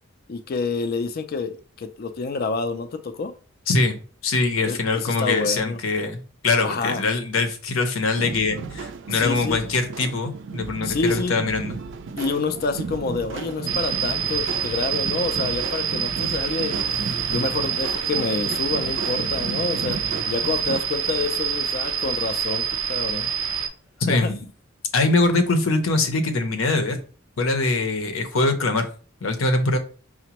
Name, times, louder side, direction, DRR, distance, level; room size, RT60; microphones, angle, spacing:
voice 1, 0.3-3.3 4.6-5.8 6.6-7.1 9.1-9.6 10.8-11.3 12.2-16.8 17.3-20.0 20.3-23.3 24.1-24.3, left 4 dB, 45° left, 9 dB, 0.4 m, -28 dB
voice 2, 3.7-11.8 24.0-24.5 24.9-27.0 27.4-28.9 29.2-29.8, left 3 dB, 75° left, 7 dB, 0.7 m, -23 dB
sound 1, 8.1-20.8, right 4 dB, 60° right, 0.3 m, -34 dB
sound 2, 13.7-23.7, right 8 dB, 80° right, 0.7 m, -26 dB
sound 3, 16.9-24.2, right 1 dB, 5° right, 0.6 m, -44 dB
5.8 x 2.1 x 2.9 m, 0.39 s
head